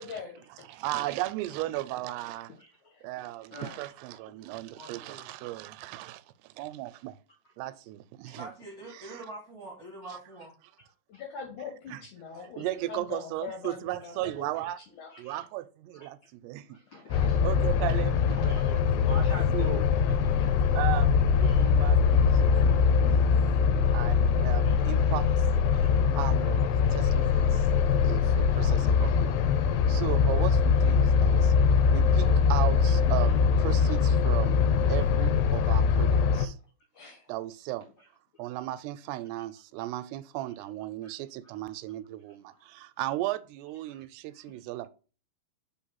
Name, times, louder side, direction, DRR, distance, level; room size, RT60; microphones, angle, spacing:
voice 1, 0.0-0.3 2.9-3.1 11.1-14.5 14.9-15.1 36.9-37.2, left 6 dB, 65° left, 2.2 m, -41 dB
voice 2, 0.7-2.5 3.0-7.2 7.6-8.5 8.9-9.2 10.1-10.2 11.9-12.0 12.6-14.8 15.2-16.8 17.1-19.2 19.5-19.8 20.7-23.4 23.9-25.5 25.7-27.7 28.0-31.5 31.9-34.6 34.9-36.6 37.3-37.9 38.4-44.9, right 16 dB, 90° right, 2.6 m, -36 dB
voice 3, 4.7-5.2 8.3-10.5, right 2 dB, 45° right, 1.2 m, -44 dB
voice 4, 16.7-17.4 18.5-19.9 20.2-20.8 21.4-21.9 22.5-22.6 24.6-24.7 25.8-25.9 26.8-27.0 28.9-29.2 41.0-41.1 43.9-44.0, left 1 dB, 40° left, 2.3 m, -45 dB
sound 1, 17.1-36.5, left 6 dB, 85° left, 2.7 m, -23 dB
5.2 x 4.5 x 5.5 m
omnidirectional pair, 4.7 m